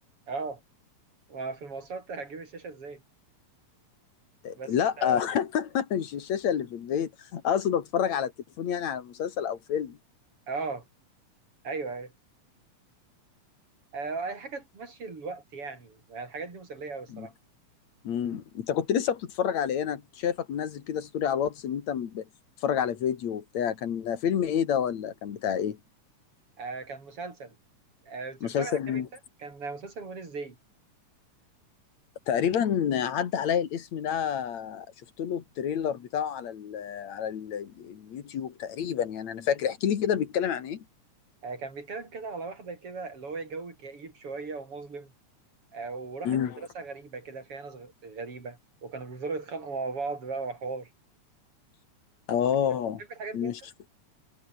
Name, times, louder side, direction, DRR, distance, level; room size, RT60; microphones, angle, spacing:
voice 1, 0.3-0.6 1.3-3.0 4.6-5.2 10.5-10.9 11.6-12.1 13.9-17.3 26.6-27.6 28.0-29.0 29.4-30.6 41.4-45.1 45.7-50.9 53.2-53.6, right 4 dB, 45° right, 5.8 m, -37 dB
voice 2, 4.4-8.3 8.6-10.0 17.1-17.3 18.0-22.3 22.6-25.8 28.4-29.1 32.3-34.9 35.2-40.8 46.2-46.6 52.3-53.0 53.3-53.6, left 8 dB, 65° left, 3.1 m, -28 dB
omnidirectional pair, 3.5 m